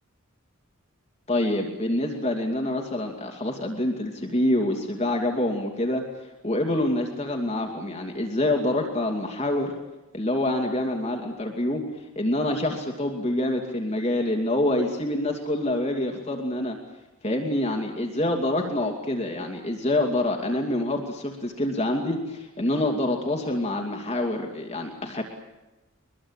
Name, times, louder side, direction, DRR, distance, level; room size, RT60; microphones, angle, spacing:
voice 1, 1.3-6.0 6.4-9.7 10.1-11.8 12.2-16.8 17.2-25.2, left 1 dB, 30° left, 2 dB, 2.6 m, -26 dB
24.0 x 21.5 x 9.0 m, 1.0 s
head